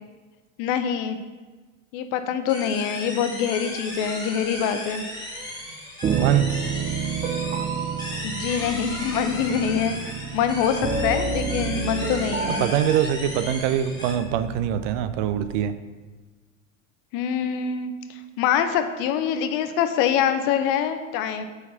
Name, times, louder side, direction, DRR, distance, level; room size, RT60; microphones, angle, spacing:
voice 1, 0.6-1.2 1.9-5.0 8.2-12.6 17.1-21.4, left 8 dB, 55° left, 8 dB, 0.7 m, -25 dB
sound 1, 2.5-14.1, left 1 dB, 10° left, 1.6 m, -36 dB
sound 2, 6.0-15.6, right 5 dB, 20° right, 0.4 m, -30 dB
voice 2, 6.1-6.5 12.6-15.7, right 10 dB, 65° right, 11 dB, 0.6 m, -23 dB
4.6 x 4.5 x 5.6 m, 1.3 s
supercardioid pair, 115°, 38 cm